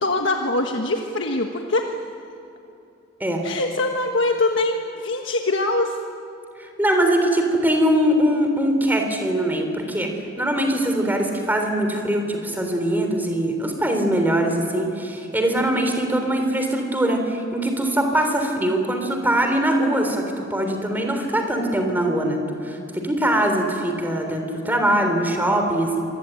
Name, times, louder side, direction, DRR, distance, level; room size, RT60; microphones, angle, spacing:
voice 1, 0.0-1.9 3.4-6.0, left 2 dB, 70° left, 3 dB, 1.4 m, -23 dB
voice 2, 6.6-10.1 10.4-26.1, right 1 dB, 10° right, 4 dB, 3.6 m, -22 dB
26.0 x 20.5 x 9.0 m, 2.8 s
head